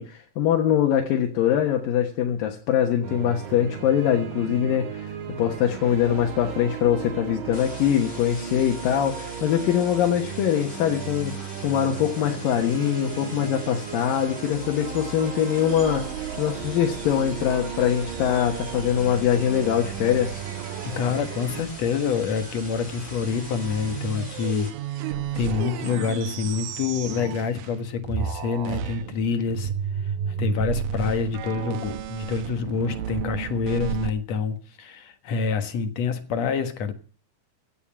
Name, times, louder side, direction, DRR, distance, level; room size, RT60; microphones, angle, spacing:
voice 1, 0.0-16.0 16.4-20.4, left 10 dB, 80° left, 3.0 m, -23 dB
sound 1, 3.0-21.6, right 7 dB, 60° right, 3.4 m, -36 dB
sound 2, 7.5-24.7, left 1 dB, 20° left, 5.2 m, -43 dB
sound 3, 15.5-27.8 28.0-34.1, right 9 dB, 85° right, 2.8 m, -34 dB
voice 2, 20.8-24.7 25.3-29.7 30.0-36.9, left 5 dB, 55° left, 2.3 m, -27 dB
16.0 x 7.6 x 8.7 m
omnidirectional pair, 3.9 m